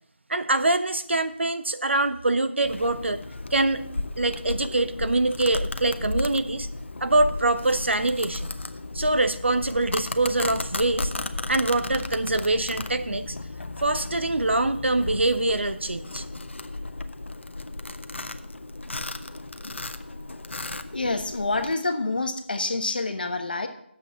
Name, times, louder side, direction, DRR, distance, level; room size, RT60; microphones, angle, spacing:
voice 1, 0.3-3.2 3.5-3.9 4.2-6.7 7.0-8.5 8.9-11.1 11.5-13.3 13.8-16.2, right 2 dB, 75° right, 11 dB, 0.9 m, -24 dB
Domestic sounds home sounds, 2.6-21.7, left 2 dB, 80° left, 0.9 m, -34 dB
voice 2, 20.9-23.7, left 3 dB, 50° left, 6 dB, 1.3 m, -27 dB
9.9 x 7.7 x 5.6 m, 0.73 s
figure-of-eight pair, 175°, 6 cm